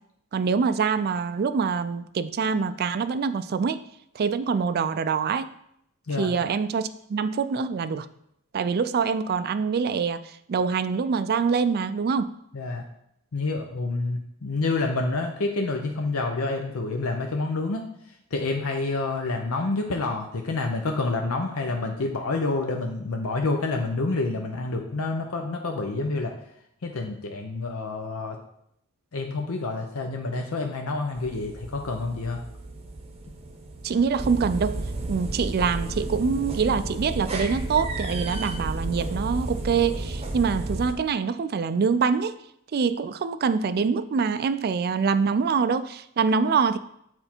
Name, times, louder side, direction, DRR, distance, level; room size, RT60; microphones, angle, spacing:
voice 1, 0.3-3.8 4.2-5.5 6.2-8.1 8.5-12.3 33.8-42.4 42.7-46.8, right 5 dB, 45° right, 13 dB, 0.3 m, -25 dB
voice 2, 12.5-12.8 13.3-17.9 18.3-26.3 26.8-28.4 29.1-32.4, left 3 dB, 75° left, 3 dB, 0.7 m, -28 dB
sound 1, 31.1-40.9, right 2 dB, 30° right, 0.8 m, -32 dB
7.9 x 4.4 x 4.4 m, 0.76 s
head